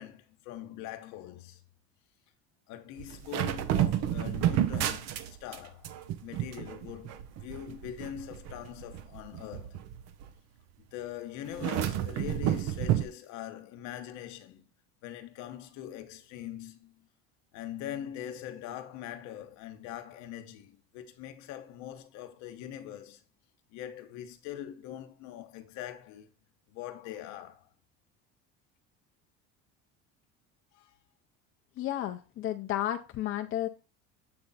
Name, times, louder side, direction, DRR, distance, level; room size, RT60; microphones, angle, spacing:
voice 1, 0.0-1.6 2.7-5.9 6.2-9.8 10.9-14.7 15.0-17.1 17.5-23.2 23.7-26.3 26.7-27.7 30.7-30.9, left 11 dB, 70° left, 1.1 m, -42 dB
sound 1, 3.0-5.6 5.8-10.3 11.5-13.1, right 11 dB, 60° right, 0.7 m, -31 dB
voice 2, 31.8-33.7, left 12 dB, 45° left, 0.6 m, -32 dB
7.8 x 3.5 x 4.1 m
cardioid pair, 125°, 29 cm